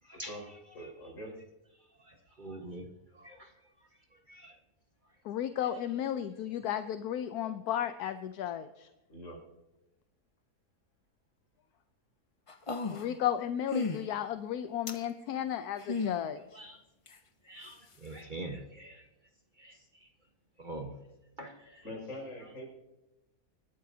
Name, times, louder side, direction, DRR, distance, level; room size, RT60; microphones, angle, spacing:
voice 1, 0.0-1.1 1.7-4.6 5.0-5.2 5.6-6.0 16.4-16.9 17.4-20.3 20.6-21.1 21.4-21.9 22.4-22.6, right 2 dB, 35° right, 3 dB, 1.3 m, -47 dB
voice 2, 0.7-1.3 9.1-9.4 21.8-22.7, equal, 55° left, -1 dB, 6.3 m, -43 dB
voice 3, 5.2-8.9 12.9-16.6, left 10 dB, 75° left, 10 dB, 1.2 m, -34 dB
sound 1, 12.5-13.2 13.7-14.0 14.9-15.0 15.8-16.2 17.1-17.2, left 4 dB, 30° left, 0.6 m, -33 dB
26.0 x 12.5 x 2.8 m, 0.98 s
omnidirectional pair, 1.6 m